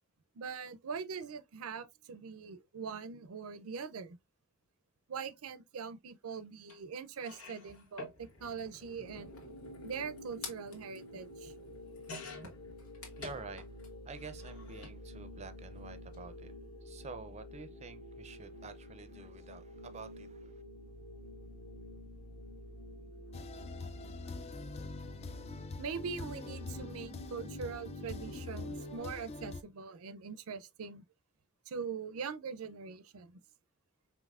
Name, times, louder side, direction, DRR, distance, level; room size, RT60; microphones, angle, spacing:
voice 1, 0.3-4.2 5.1-9.3 9.8-11.5 12.4-12.5 25.8-31.0 31.7-33.4, right 6 dB, 85° right, 0.5 m, -42 dB
sound 1, 6.7-6.8 7.2-13.9 14.2-15.0 16.0-16.2 16.4-16.5, left 3 dB, 90° left, 1.7 m, -50 dB
sound 2, 9.0-29.0, equal, 50° left, 1.2 m, -49 dB
voice 2, 13.2-13.6 14.1-16.5 16.8-20.6, right 4 dB, 30° right, 0.5 m, -48 dB
sound 3, 23.3-29.6, left 3 dB, 30° left, 0.3 m, -44 dB
5.2 x 2.9 x 2.4 m
head